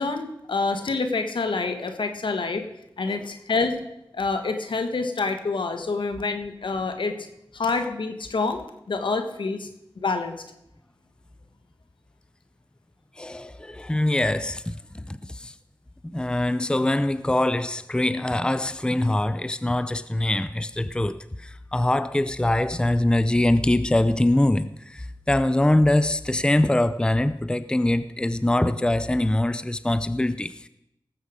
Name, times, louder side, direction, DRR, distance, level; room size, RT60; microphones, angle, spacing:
voice 1, 0.0-2.6 3.0-3.8 4.1-7.1 7.5-9.7 10.0-10.4, left 4 dB, 75° left, 1.4 m, -27 dB
voice 2, 13.2-15.5 16.0-30.7, left 1 dB, 10° left, 0.6 m, -23 dB
18.0 x 7.9 x 5.0 m
cardioid pair, 40°, 9 cm